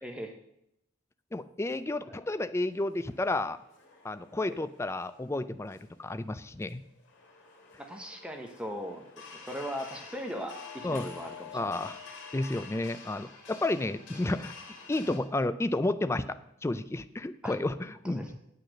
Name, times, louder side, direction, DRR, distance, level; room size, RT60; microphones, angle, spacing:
voice 1, 0.0-0.3 2.1-2.2 4.5-4.6 7.8-11.6 17.4-17.6 18.0-18.3, equal, 5° right, 3 dB, 1.0 m, -39 dB
voice 2, 1.3-3.6 4.0-6.8 10.8-11.1 11.5-12.0 12.3-14.5 14.9-18.3, left 2 dB, 15° left, 12 dB, 0.4 m, -31 dB
sound 1, 2.7-15.2, left 5 dB, 65° left, 2.9 m, -48 dB
9.1 x 8.3 x 6.3 m, 0.79 s
head